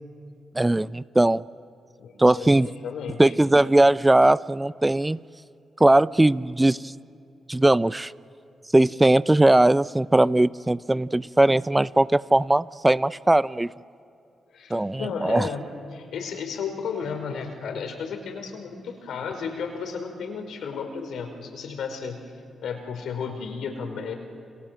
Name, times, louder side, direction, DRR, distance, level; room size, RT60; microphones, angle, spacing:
voice 1, 0.5-1.4 2.2-2.7 3.2-5.2 5.8-6.9 7.5-8.1 8.7-13.7 14.7-15.5, right 1 dB, 20° right, 17 dB, 0.7 m, -19 dB
voice 2, 2.0-3.3 14.5-22.2 22.6-24.2, left 6 dB, 75° left, 6 dB, 4.8 m, -33 dB
30.0 x 26.5 x 7.6 m, 2.5 s
supercardioid pair, 45°, 0 cm